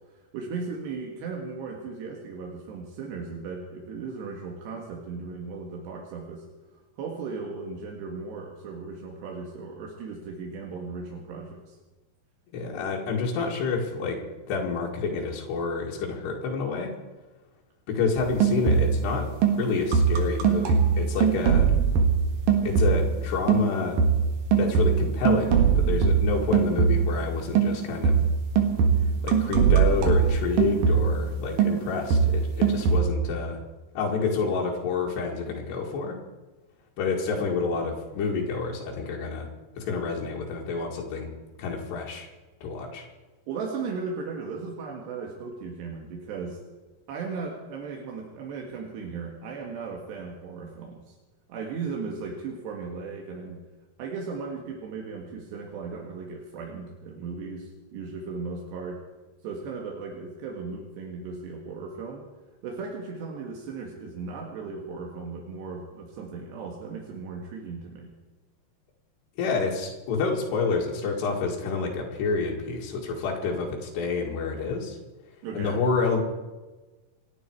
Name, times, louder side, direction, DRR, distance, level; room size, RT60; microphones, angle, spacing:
voice 1, 0.1-6.4 6.7-11.8 43.5-46.6 47.1-51.1 51.5-53.6 54.0-59.0 59.4-62.2 62.6-68.1 75.4-75.8, right 4 dB, 85° right, 0 dB, 4.0 m, -36 dB
voice 2, 12.5-14.2 14.5-16.9 17.9-19.3 19.6-21.7 22.6-24.0 24.6-28.2 29.2-33.6 34.0-36.2 37.0-39.5 39.7-41.3 41.6-42.3 42.6-43.1 69.4-75.0 75.5-76.2, left 4 dB, 80° left, -2 dB, 4.2 m, -28 dB
sound 1, 18.2-19.1 19.4-23.2 23.5-27.2 27.6-31.3 31.6-33.0, right 6 dB, 60° right, 2.9 m, -22 dB
28.0 x 11.0 x 4.7 m, 1.2 s
omnidirectional pair, 4.8 m